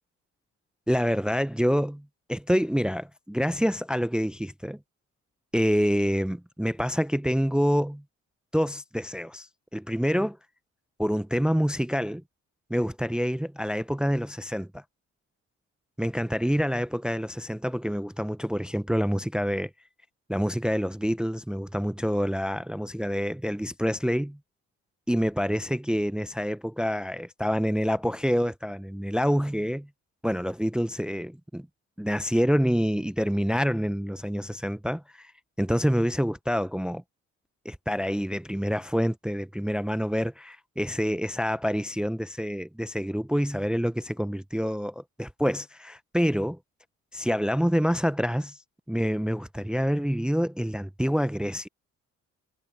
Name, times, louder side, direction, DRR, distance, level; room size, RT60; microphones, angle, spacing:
voice 1, 0.9-2.0 2.3-4.8 5.5-8.0 8.5-9.5 9.7-10.4 11.0-12.2 12.7-14.8 16.0-19.7 20.3-24.4 25.1-29.9 30.2-31.7 32.0-35.3 35.6-37.0 37.6-46.6 47.1-48.6 48.9-51.7, equal, 5° right, 0.6 m, -27 dB
cardioid pair, 90°, 30 cm